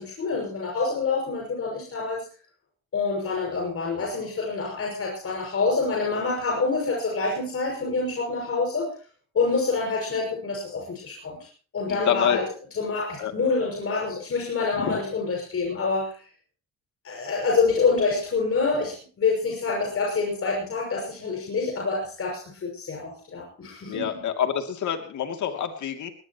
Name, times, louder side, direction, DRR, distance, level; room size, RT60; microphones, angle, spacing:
voice 1, 0.0-2.2 2.9-8.9 9.3-11.4 11.7-12.5 12.8-16.1 17.0-24.2, left 4 dB, 50° left, -1 dB, 6.5 m, -26 dB
voice 2, 11.9-12.4 13.2-13.3 14.7-14.9 23.9-26.1, left 9 dB, 70° left, 5 dB, 2.9 m, -27 dB
21.0 x 19.5 x 3.1 m, 0.41 s
cardioid pair, 90°, 30 cm